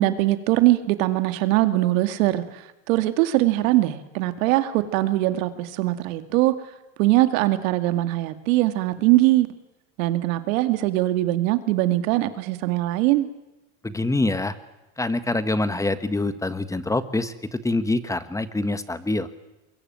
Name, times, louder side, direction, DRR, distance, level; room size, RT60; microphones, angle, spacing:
voice 1, 0.0-2.4 2.9-6.5 7.0-9.5 10.0-13.3, right 16 dB, 70° right, 10 dB, 2.3 m, -21 dB
voice 2, 13.8-14.5 15.0-19.3, left 2 dB, 10° left, 12 dB, 1.5 m, -25 dB
24.0 x 22.0 x 9.2 m, 0.99 s
supercardioid pair, 120°, 41 cm